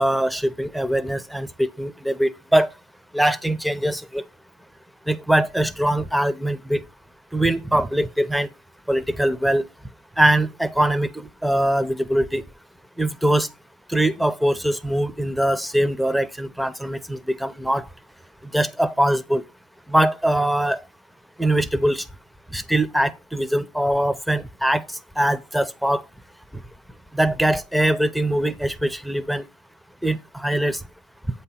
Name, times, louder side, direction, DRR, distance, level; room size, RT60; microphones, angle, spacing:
voice 1, 0.0-2.7 3.1-4.2 5.1-6.8 7.3-8.5 8.9-9.6 10.2-12.4 13.0-13.5 13.9-17.9 18.5-19.4 19.9-20.8 21.4-22.1 22.5-26.0 27.1-29.5 30.0-30.8, right 1 dB, ahead, 0.5 m, -22 dB
7.9 x 2.9 x 5.5 m
cardioid pair, 90°, 30 cm